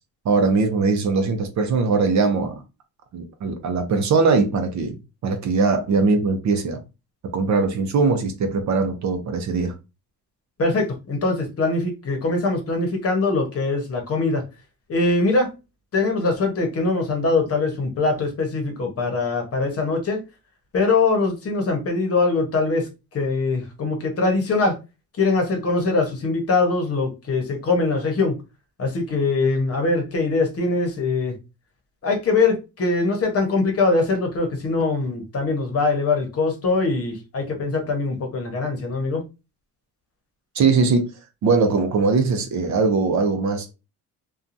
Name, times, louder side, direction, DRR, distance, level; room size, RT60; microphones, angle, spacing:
voice 1, 0.2-2.6 3.1-6.8 7.3-9.7 40.5-41.1 41.4-43.7, right 4 dB, 50° right, 0.7 m, -21 dB
voice 2, 10.6-14.4 14.9-15.5 15.9-20.2 20.7-24.8 25.2-28.3 28.8-31.4 32.0-39.2, left 3 dB, 40° left, 0.9 m, -22 dB
2.8 x 2.3 x 2.5 m
cardioid pair, 120°, 36 cm